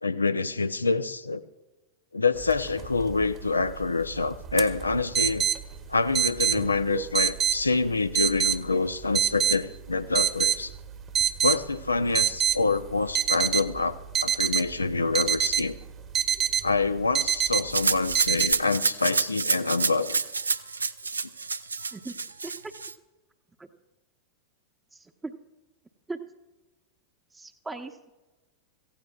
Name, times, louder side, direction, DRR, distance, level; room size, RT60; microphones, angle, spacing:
voice 1, 0.0-1.4 2.1-5.5 5.9-10.7 11.4-14.0 14.2-15.8 16.6-20.2, left 3 dB, 80° left, 12 dB, 0.6 m, -26 dB
sound 1, 2.4-18.5, right 9 dB, 30° right, 1.3 m, -28 dB
Rattle (instrument), 17.7-22.9, right 4 dB, 75° right, 0.5 m, -28 dB
voice 2, 24.9-25.3 26.1-26.2 27.3-28.1, right 3 dB, 10° right, 5 dB, 0.9 m, -39 dB
25.5 x 16.0 x 2.4 m, 1.1 s
figure-of-eight pair, 90°, 0 cm